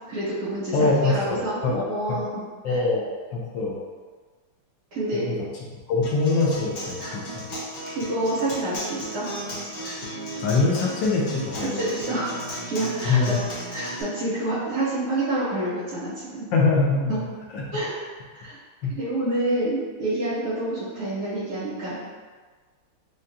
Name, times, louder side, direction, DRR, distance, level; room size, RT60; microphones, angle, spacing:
voice 1, 0.1-2.4 2.7-2.8 4.9-5.3 7.0-7.2 7.9-9.3 11.7-13.3 13.7-16.5 17.1-17.2 17.7-18.1 18.3-18.6 19.0-22.0, right 1 dB, 90° right, -11 dB, 2.1 m, -28 dB
voice 2, 0.7-1.8 2.1-2.2 2.6-3.8 5.1-5.5 5.9-7.4 10.4-11.8 13.0-13.4 16.5-17.2 17.5-17.7 18.8-18.9, left 3 dB, 75° left, -3 dB, 1.4 m, -23 dB
Acoustic guitar, 6.0-14.0, equal, 50° left, 1.4 m, -35 dB
5.0 x 2.2 x 2.7 m, 1.4 s
omnidirectional pair, 2.2 m